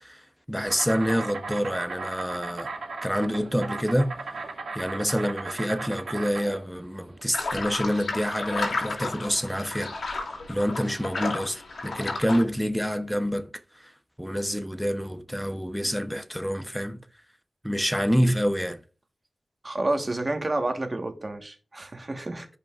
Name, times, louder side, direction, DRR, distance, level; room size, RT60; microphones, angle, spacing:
voice 1, 0.0-2.7 3.0-4.3 4.7-9.9 10.5-13.5 13.8-13.9 14.2-17.0 17.6-18.8, equal, ahead, 0.8 m, -27 dB
Insect, 0.7-10.7, right 3 dB, 90° right, 2.1 m, -37 dB
sound 1, 7.3-12.4, left 3 dB, 90° left, 2.2 m, -32 dB
voice 2, 19.6-22.5, right 2 dB, 35° right, 1.4 m, -29 dB
14.0 x 5.2 x 2.5 m
cardioid pair, 60°, 0 cm